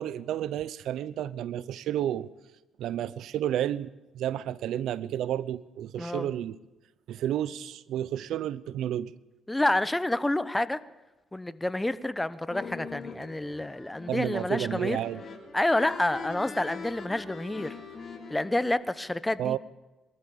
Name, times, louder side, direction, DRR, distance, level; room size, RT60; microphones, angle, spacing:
voice 1, 0.0-2.3 2.8-6.6 7.1-9.1 14.1-15.2 19.4-19.6, right 11 dB, 80° right, 19 dB, 0.7 m, -31 dB
voice 2, 6.0-6.3 9.5-10.8 11.3-15.0 15.5-17.7 18.3-19.6, left 1 dB, 10° left, 15 dB, 1.0 m, -28 dB
sound 1, 12.5-18.7, left 5 dB, 45° left, 4.9 m, -42 dB
23.0 x 13.5 x 8.5 m, 1.1 s
cardioid pair, 90°, 0 cm